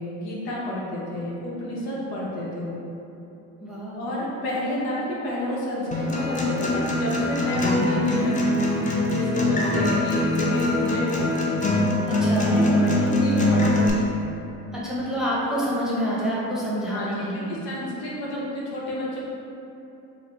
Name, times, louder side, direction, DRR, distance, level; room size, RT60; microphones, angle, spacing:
voice 1, 0.0-2.8 3.9-8.4 9.1-11.4 12.1-12.3 12.5-13.8 16.9-17.1 17.3-19.2, left 1 dB, 70° left, -5 dB, 0.9 m, -30 dB
voice 2, 3.6-4.1 12.1-12.6 14.7-17.6, equal, ahead, -7 dB, 0.9 m, -28 dB
Acoustic guitar, 5.9-13.9, left 1 dB, 20° left, 0.6 m, -23 dB
3.8 x 2.0 x 3.2 m, 2.9 s
hypercardioid pair, 65°, 39 cm